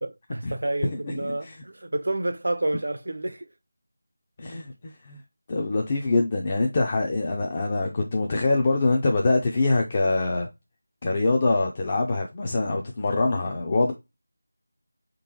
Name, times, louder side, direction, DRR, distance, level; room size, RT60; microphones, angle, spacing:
voice 1, 0.0-3.5 4.5-4.6, right 2 dB, 60° right, 0.5 m, -29 dB
voice 2, 0.8-1.5 4.4-5.2 5.5-10.5 11.0-13.9, left 3 dB, 20° left, 0.4 m, -24 dB
4.5 x 3.7 x 2.8 m
figure-of-eight pair, 180°, 0 cm